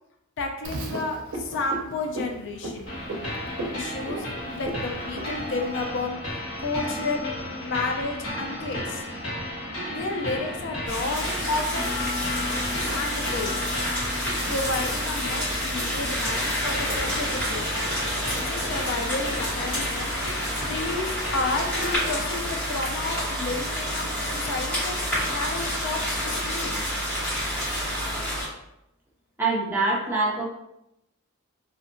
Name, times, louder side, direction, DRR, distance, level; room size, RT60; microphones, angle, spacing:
voice 1, 0.4-3.0 3.7-6.2 6.6-7.2 7.6-9.0 9.9-11.9 12.8-13.6 14.5-17.7 18.3-20.1 20.6-24.9 25.3-26.7, left 3 dB, 55° left, 3 dB, 0.3 m, -31 dB
Frog, 0.6-5.8, right 2 dB, 75° right, 0.5 m, -36 dB
sound 1, 2.9-22.0, left 1 dB, 85° left, 1.1 m, -34 dB
sound 2, 10.9-28.5, equal, 10° left, 1.4 m, -29 dB
voice 2, 29.4-30.5, right 3 dB, 10° right, -5 dB, 0.5 m, -24 dB
2.6 x 2.2 x 2.5 m, 0.84 s
head